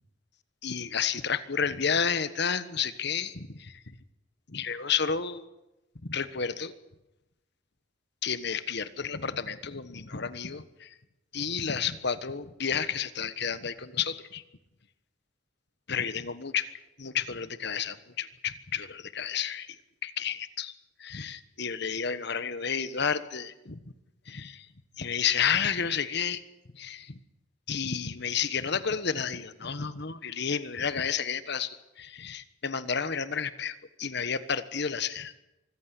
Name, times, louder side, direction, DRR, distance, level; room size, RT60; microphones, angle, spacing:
voice 1, 0.6-3.7 4.5-5.4 6.1-6.7 8.2-10.9 11.3-14.4 15.9-16.7 17.0-19.8 20.0-20.7 21.0-23.8 24.3-24.6 25.0-26.4 26.8-27.1 27.7-35.3, left 6 dB, 60° left, 13 dB, 1.3 m, -31 dB
24.5 x 15.0 x 9.8 m, 0.95 s
head